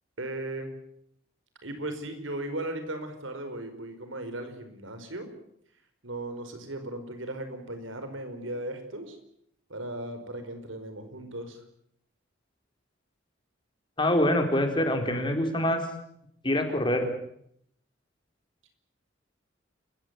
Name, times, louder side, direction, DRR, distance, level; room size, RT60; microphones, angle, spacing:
voice 1, 0.2-0.7 1.6-5.3 6.0-9.2 9.7-11.6, right 1 dB, 90° right, 8 dB, 5.1 m, -37 dB
voice 2, 14.0-15.8 16.4-17.1, left 1 dB, 25° left, 5 dB, 4.4 m, -25 dB
29.0 x 15.0 x 9.4 m, 0.71 s
head